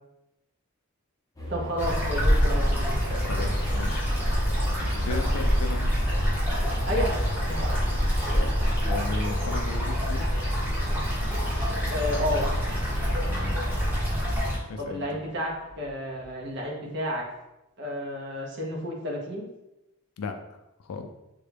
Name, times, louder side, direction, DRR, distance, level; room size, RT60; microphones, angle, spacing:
sound 1, 1.3-16.5, equal, 15° left, 0.5 m, -42 dB
voice 1, 1.5-3.3 6.9-7.8 11.9-12.5 14.8-17.2 17.8-19.5, equal, 50° right, -2 dB, 0.8 m, -31 dB
sound 2, 1.8-14.6, equal, 10° right, 0.8 m, -26 dB
voice 2, 3.2-4.6 4.9-6.0 8.3-8.6 8.8-10.3 13.3-13.6 14.7-15.2 20.2-21.1, left 4 dB, 75° left, 7 dB, 0.4 m, -36 dB
3.6 x 2.2 x 3.3 m, 0.92 s
head